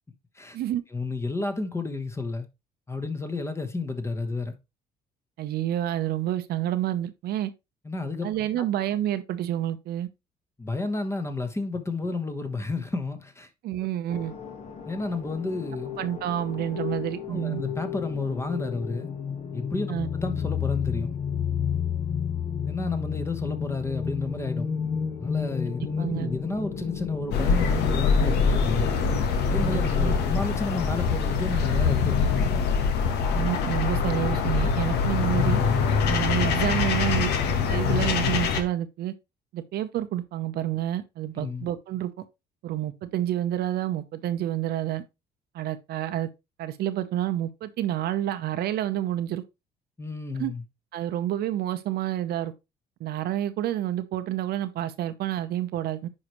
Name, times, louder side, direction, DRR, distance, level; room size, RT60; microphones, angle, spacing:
voice 1, 0.9-2.5 2.9-4.6 7.8-8.3 10.6-13.5 14.8-15.9 17.3-19.1 19.5-21.2 22.6-24.7 25.2-29.0 29.4-32.3 41.4-41.7 50.0-50.6, left 3 dB, 15° left, 1.2 m, -31 dB
voice 2, 5.4-7.5 8.2-10.1 13.6-14.3 16.0-17.6 19.9-20.1 26.0-26.3 29.6-30.2 33.3-35.6 36.0-39.1 39.5-42.2 42.6-45.0 45.5-46.3 46.6-49.4 50.4-50.5 50.9-52.5 53.0-56.1, right 12 dB, 70° right, 0.8 m, -29 dB
sound 1, 14.1-31.3, left 7 dB, 40° left, 1.4 m, -33 dB
sound 2, 27.3-38.6, left 5 dB, 80° left, 1.4 m, -24 dB
9.8 x 4.8 x 3.1 m
cardioid pair, 110°, 17 cm